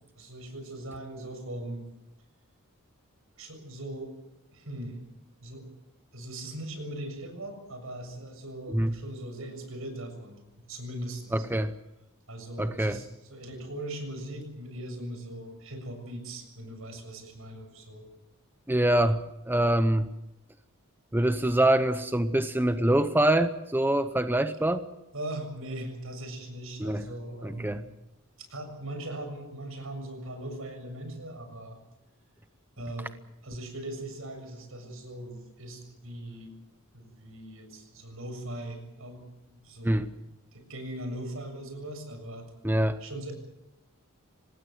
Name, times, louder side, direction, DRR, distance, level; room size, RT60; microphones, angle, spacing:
voice 1, 0.2-1.9 3.4-4.1 4.5-5.0 5.4-5.7 6.1-11.4 12.3-18.1 25.1-27.8 28.4-31.8 32.8-33.2 33.4-36.5 36.9-40.0 40.5-42.5 43.0-43.3, right 1 dB, 75° right, 7 dB, 7.1 m, -40 dB
voice 2, 11.3-11.7 12.6-13.0 18.7-20.1 21.1-24.8 26.8-27.0 27.4-27.8 39.8-40.1 42.6-43.0, right 1 dB, 10° right, 10 dB, 0.8 m, -25 dB
26.0 x 19.0 x 7.8 m, 0.92 s
head